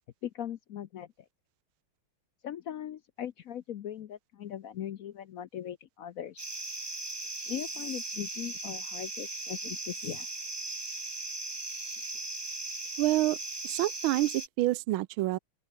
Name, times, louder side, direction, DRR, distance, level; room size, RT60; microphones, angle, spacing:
voice 1, 0.2-1.3 2.4-6.5 7.5-10.3, left 10 dB, 70° left, 0.8 m, -39 dB
sound 1, 6.4-14.5, right 2 dB, 15° right, 1.3 m, -38 dB
voice 2, 13.0-13.4 13.6-15.4, right 16 dB, 80° right, 1.4 m, -27 dB
open air
omnidirectional pair, 2.3 m